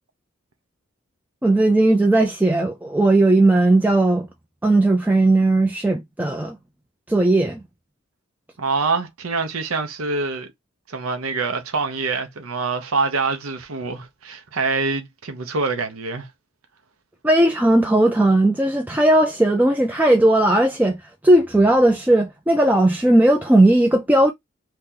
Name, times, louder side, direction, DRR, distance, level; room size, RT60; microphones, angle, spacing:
voice 1, 1.4-4.3 4.6-6.6 7.1-7.6 17.2-21.0 21.2-24.3, right 1 dB, 10° right, 0.3 m, -17 dB
voice 2, 8.6-10.5 10.9-16.3, right 4 dB, 90° right, 0.8 m, -25 dB
2.9 x 2.9 x 3.7 m
head